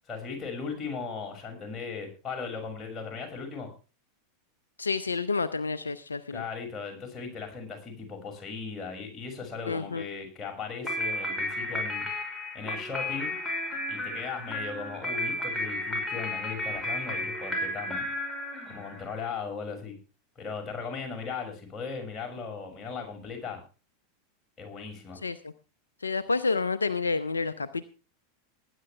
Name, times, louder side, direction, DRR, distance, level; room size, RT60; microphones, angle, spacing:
voice 1, 0.1-3.7 6.3-12.1 12.5-13.3 13.9-18.1 18.7-20.0 20.4-23.6 24.6-25.2, left 5 dB, 25° left, 2 dB, 6.4 m, -37 dB
voice 2, 4.8-6.4 9.7-10.1 25.2-25.5 26.0-27.8, left 4 dB, 80° left, 14 dB, 0.6 m, -29 dB
sound 1, 10.8-19.2, left 1 dB, 5° left, 5.7 m, -33 dB
19.5 x 10.0 x 3.4 m, 0.34 s
figure-of-eight pair, 85°, 0 cm